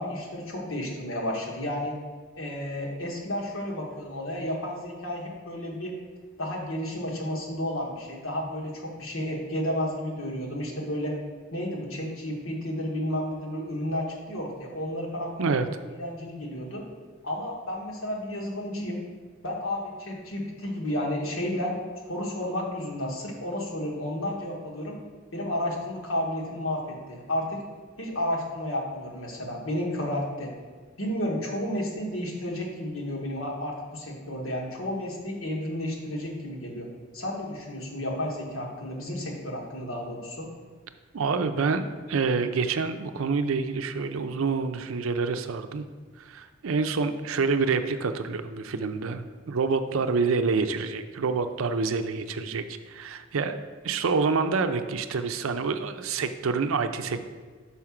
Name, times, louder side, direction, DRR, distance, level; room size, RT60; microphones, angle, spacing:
voice 1, 0.0-1.9 2.4-5.9 6.4-11.1 11.5-15.5 15.9-16.8 17.2-19.0 19.4-21.7 22.1-24.9 25.3-27.6 28.0-30.5 31.0-36.9 37.1-40.5, left 1 dB, 85° left, -1 dB, 1.5 m, -32 dB
voice 2, 41.1-45.9 46.2-53.6 53.8-57.2, right 4 dB, 90° right, 9 dB, 0.5 m, -27 dB
5.6 x 4.8 x 5.8 m, 1.5 s
head